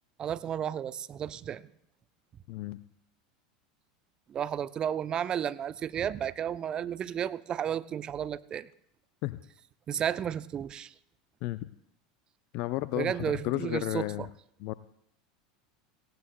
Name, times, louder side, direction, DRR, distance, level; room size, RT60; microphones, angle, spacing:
voice 1, 0.2-1.6 4.3-8.7 9.9-10.9 12.9-14.3, right 9 dB, 35° right, 16 dB, 0.5 m, -33 dB
voice 2, 12.5-14.3 14.6-14.7, left 18 dB, 55° left, 15 dB, 0.4 m, -33 dB
18.5 x 17.0 x 2.2 m, 0.71 s
hypercardioid pair, 80°, 3 cm